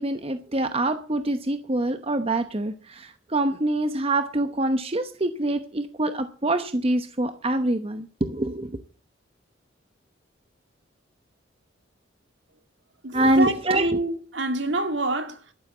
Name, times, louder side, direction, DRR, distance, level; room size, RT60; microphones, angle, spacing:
voice 1, 0.0-8.7 13.1-14.0, right 1 dB, 30° right, 0.9 m, -25 dB
voice 2, 13.0-15.4, right 2 dB, 65° right, 2.3 m, -27 dB
12.5 x 12.0 x 6.9 m
head